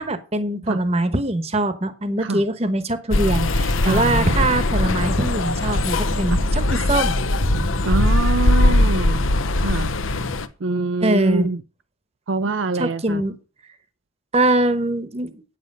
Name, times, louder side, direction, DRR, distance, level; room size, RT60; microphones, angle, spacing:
voice 1, 0.0-7.7 11.0-11.5 12.8-13.3 14.3-15.4, right 2 dB, 30° right, 1.1 m, -23 dB
sound 1, 3.1-10.5, left 2 dB, 75° left, 0.9 m, -20 dB
voice 2, 3.8-4.5 6.3-6.4 7.8-9.3 9.6-9.9 10.6-11.6 12.3-13.2, right 3 dB, 65° right, 0.5 m, -25 dB
9.6 x 7.6 x 5.4 m
head